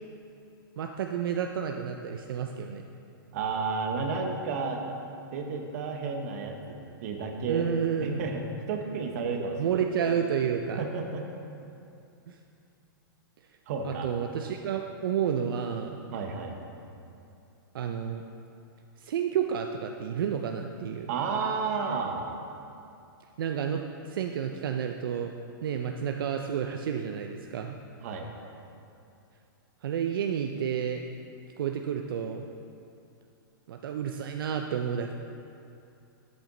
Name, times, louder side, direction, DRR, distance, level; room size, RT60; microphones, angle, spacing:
voice 1, 0.8-2.9 7.5-8.3 9.6-10.8 12.3-12.4 13.8-16.0 17.7-18.2 19.0-21.1 23.4-25.3 25.6-27.8 29.8-31.0 31.6-32.5 33.7-35.1, right 8 dB, 70° right, 4 dB, 0.5 m, -30 dB
voice 2, 3.3-4.8 5.3-7.6 8.0-8.4 8.7-9.8 10.8-11.2 13.7-14.1 16.1-16.5 21.1-22.3 28.0-28.3, right 5 dB, 40° right, 3 dB, 0.9 m, -32 dB
8.0 x 7.6 x 3.9 m, 2.6 s
hypercardioid pair, 170°, 12 cm